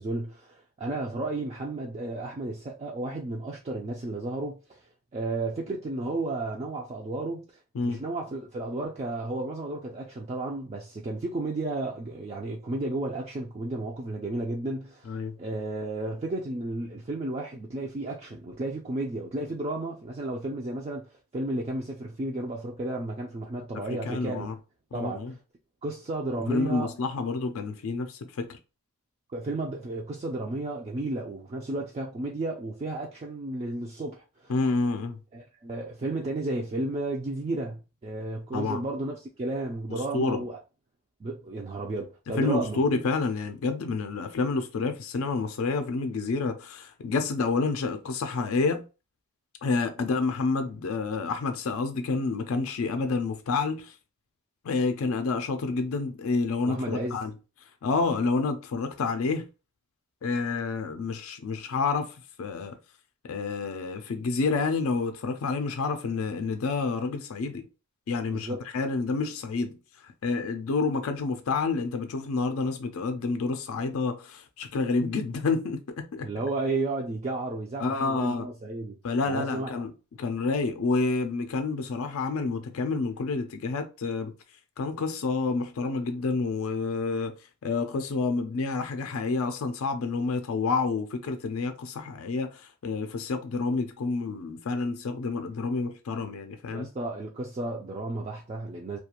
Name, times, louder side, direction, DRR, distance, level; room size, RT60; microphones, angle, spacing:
voice 1, 0.0-4.6 5.1-7.5 7.8-24.5 24.9-25.4 25.8-26.9 29.3-34.5 35.3-40.6 41.2-42.8 56.7-57.2 68.3-68.6 76.2-79.0 79.3-79.8 96.7-99.0, right 2 dB, 30° right, 0.3 m, -33 dB
voice 2, 15.1-15.4 23.9-24.5 24.9-25.3 26.5-28.6 34.5-35.2 38.5-38.8 39.9-40.4 42.4-48.9 49.6-54.0 54.6-57.3 57.8-59.5 60.2-62.8 63.2-67.7 68.1-76.3 77.8-78.5 79.0-79.9 80.2-84.3 84.8-87.3 87.6-96.9, left 4 dB, 65° left, 0.4 m, -29 dB
2.4 x 2.2 x 2.8 m
head